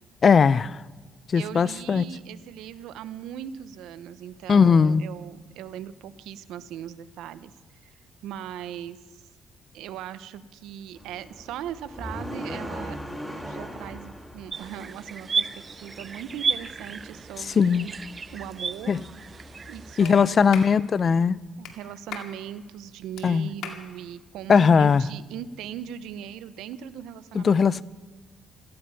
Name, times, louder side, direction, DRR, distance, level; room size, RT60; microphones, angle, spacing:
voice 1, 0.2-0.8 1.3-2.0 4.5-5.0 17.5-17.9 18.9-19.0 20.0-21.4 23.2-23.5 24.5-25.0 27.3-27.8, left 6 dB, 45° left, 0.4 m, -19 dB
voice 2, 1.3-7.5 7.8-7.9 8.2-9.2 9.7-13.0 13.4-17.9 18.3-19.0 19.7-20.5 21.6-27.8, right 10 dB, 90° right, 0.8 m, -39 dB
sound 1, 11.0-19.9, equal, ahead, 2.1 m, -41 dB
sound 2, 14.5-20.7, right 5 dB, 40° right, 0.6 m, -33 dB
Clapping, 20.0-20.2 20.5-20.7 21.6-21.8 22.1-22.3 23.2-23.3 23.6-23.8, left 7 dB, 80° left, 2.1 m, -37 dB
17.0 x 14.5 x 5.6 m
cardioid pair, 90°, 0 cm